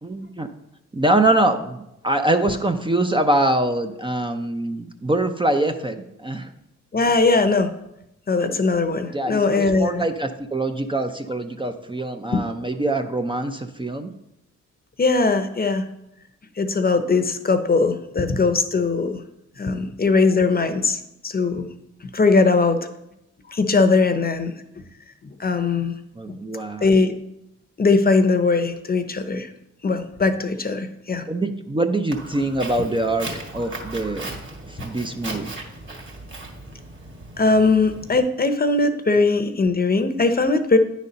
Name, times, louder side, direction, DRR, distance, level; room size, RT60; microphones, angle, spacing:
voice 1, 0.0-0.5 0.9-6.5 9.1-14.1 26.2-26.8 31.3-34.4 34.7-35.5, right 1 dB, 15° right, 5 dB, 0.6 m, -24 dB
voice 2, 6.9-7.7 8.3-10.0 12.3-12.4 15.0-15.8 16.6-19.2 19.6-21.7 22.1-22.8 23.5-24.6 25.4-25.9 26.3-26.4 26.8-27.1 27.8-29.5 29.8-31.2 37.4-40.8, left 3 dB, 30° left, 9 dB, 0.8 m, -20 dB
Walk footsteps, 32.1-38.2, right 2 dB, 40° right, 2.0 m, -37 dB
9.6 x 4.2 x 5.2 m, 0.85 s
cardioid pair, 60°, 30 cm